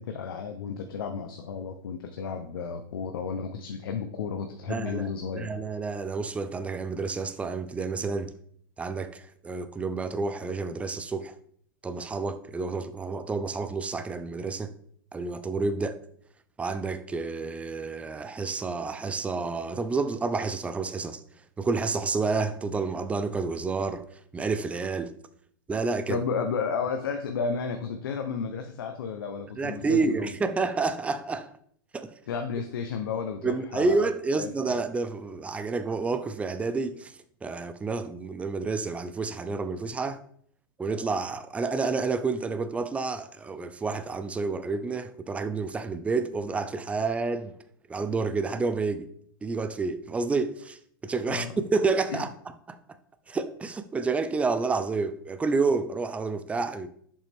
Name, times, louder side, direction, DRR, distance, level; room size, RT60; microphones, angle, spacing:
voice 1, 0.0-5.5 26.1-30.3 32.3-34.1 34.4-34.8 51.3-51.5 52.1-52.2, left 6 dB, 85° left, 0.8 m, -32 dB
voice 2, 4.7-5.1 5.3-8.3 8.8-11.3 11.8-14.7 15.1-16.0 16.6-21.2 21.6-24.0 24.3-25.1 25.7-26.2 29.6-31.5 31.9-32.1 33.4-37.1 37.4-40.2 40.8-47.6 47.9-49.1 49.4-50.8 51.0-52.3 52.7-52.8 53.3-56.9, right 4 dB, 10° right, 0.4 m, -29 dB
7.0 x 5.4 x 3.5 m
supercardioid pair, 135°, 12 cm